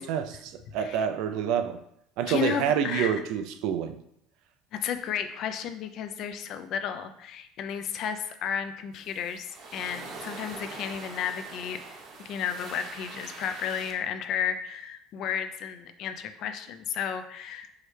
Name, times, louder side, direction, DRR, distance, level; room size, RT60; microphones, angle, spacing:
voice 1, 0.0-1.8 2.2-4.0, right 8 dB, 70° right, 9 dB, 0.4 m, -28 dB
voice 2, 2.3-3.1 4.7-9.5 9.7-11.8 12.2-17.7, left 8 dB, 55° left, 9 dB, 0.4 m, -33 dB
sound 1, 8.9-13.9, right 3 dB, 50° right, 0.9 m, -43 dB
4.6 x 3.1 x 3.3 m, 0.75 s
supercardioid pair, 115°, 0 cm